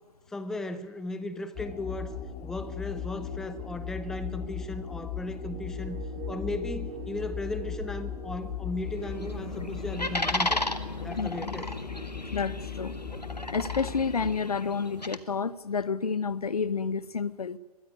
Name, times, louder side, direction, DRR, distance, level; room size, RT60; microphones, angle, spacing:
voice 1, 0.3-2.1 2.4-6.0 6.3-10.6 11.0-11.7, left 2 dB, ahead, 0.7 m, -36 dB
sound 1, 1.6-14.3, left 8 dB, 20° left, 2.4 m, -38 dB
sound 2, 5.5-10.8, right 14 dB, 20° right, 1.0 m, -45 dB
sound 3, 8.8-15.2, left 1 dB, 90° left, 1.7 m, -34 dB
voice 2, 11.2-11.6 12.3-12.9 13.5-17.6, left 5 dB, 65° left, 1.1 m, -30 dB
22.5 x 15.5 x 9.5 m
figure-of-eight pair, 125°, 20 cm